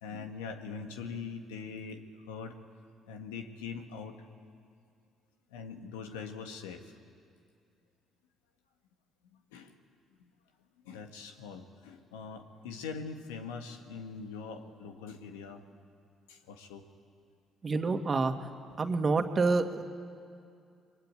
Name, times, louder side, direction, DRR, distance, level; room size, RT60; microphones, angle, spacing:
voice 1, 0.0-2.6 3.1-4.2 5.5-6.9 9.3-9.8 10.2-10.3 10.9-15.7 16.3-16.9, left 5 dB, 85° left, 6 dB, 1.8 m, -42 dB
voice 2, 17.6-18.3 18.8-19.8, right 3 dB, 40° right, 6 dB, 2.2 m, -27 dB
28.5 x 22.5 x 9.0 m, 2.4 s
hypercardioid pair, 50°, 0 cm